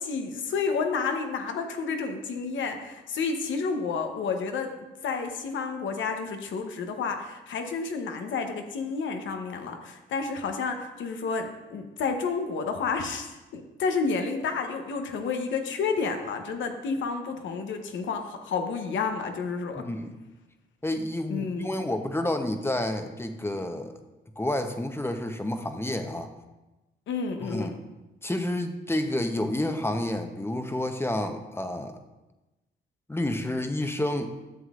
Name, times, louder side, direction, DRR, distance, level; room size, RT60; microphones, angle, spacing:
voice 1, 0.0-4.7 5.0-19.8 21.3-21.7 27.1-27.8, left 5 dB, 75° left, 5 dB, 0.9 m, -30 dB
voice 2, 19.8-20.2 20.8-23.9 24.4-26.3 27.4-27.8 28.2-31.9 33.1-34.3, left 1 dB, 10° left, 7 dB, 0.8 m, -29 dB
11.0 x 7.3 x 2.5 m, 1.0 s
cardioid pair, 75°, 20 cm